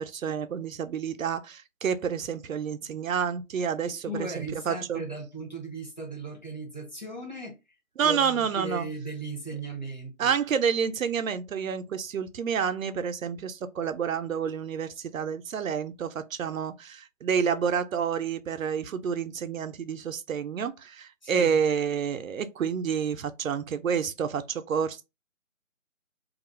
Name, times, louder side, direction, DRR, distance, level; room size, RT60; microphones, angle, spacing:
voice 1, 0.0-5.0 8.0-8.9 10.2-25.0, right 7 dB, 70° right, 0.5 m, -29 dB
voice 2, 3.8-7.6 8.0-10.3 21.2-21.6, right 3 dB, 35° left, 0.6 m, -37 dB
2.4 x 2.0 x 3.0 m
hypercardioid pair, 180°, 41 cm